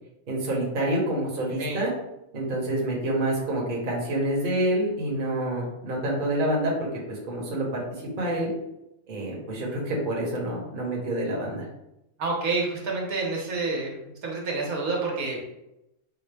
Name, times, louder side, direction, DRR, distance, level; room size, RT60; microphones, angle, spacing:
voice 1, 0.3-1.9 2.3-7.8 8.2-8.5 9.1-11.7, right 1 dB, 40° right, -3 dB, 0.9 m, -27 dB
voice 2, 12.2-13.9 14.2-15.4, right 3 dB, 80° right, -2 dB, 1.3 m, -28 dB
4.7 x 2.0 x 3.3 m, 0.88 s
omnidirectional pair, 1.5 m